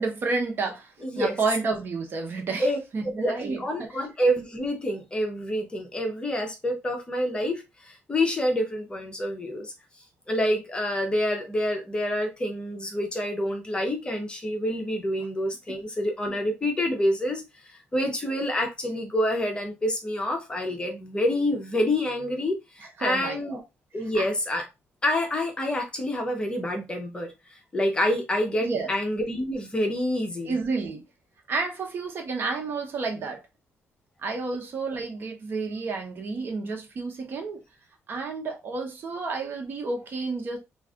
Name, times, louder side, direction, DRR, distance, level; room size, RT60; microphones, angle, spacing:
voice 1, 0.0-2.7 2.9-4.0 15.7-15.8 22.8-23.6 24.1-24.3 28.6-28.9 30.4-31.0 31.5-33.4 34.2-37.6 38.1-40.6, right 4 dB, 45° right, 0.9 m, -30 dB
voice 2, 1.0-1.4 2.6-9.7 10.3-23.6 23.9-24.7 25.0-27.3 27.7-30.6, left 1 dB, 20° left, 0.8 m, -27 dB
2.5 x 2.4 x 3.5 m
cardioid pair, 120°, 5 cm